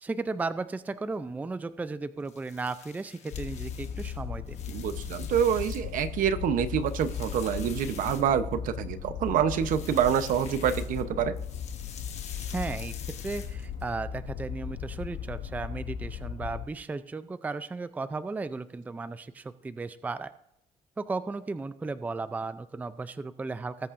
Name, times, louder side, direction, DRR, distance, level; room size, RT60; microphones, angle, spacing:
voice 1, 0.0-4.6 12.5-12.9 13.2-20.3 21.0-23.9, right 3 dB, 10° right, 12 dB, 0.4 m, -35 dB
sound 1, 2.2-6.0 6.5-8.7 9.5-11.1 11.4-13.9, left 7 dB, 50° left, 1.5 m, -47 dB
sound 2, 3.3-16.7, left 8 dB, 65° left, 0.9 m, -37 dB
voice 2, 4.7-11.4, right 8 dB, 70° right, 11 dB, 0.9 m, -27 dB
19.0 x 8.4 x 2.6 m, 0.77 s
cardioid pair, 150°, 14 cm